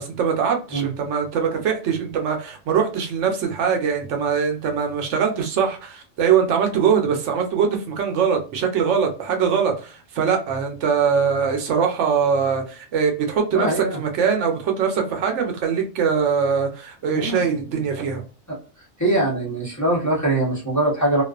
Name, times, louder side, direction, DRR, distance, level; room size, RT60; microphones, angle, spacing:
voice 1, 0.0-18.2, right 6 dB, 80° right, 4 dB, 1.0 m, -22 dB
voice 2, 13.5-14.0 17.1-17.5 19.0-21.2, right 1 dB, 15° left, -5 dB, 0.8 m, -22 dB
2.4 x 2.3 x 2.3 m, 0.36 s
omnidirectional pair, 1.2 m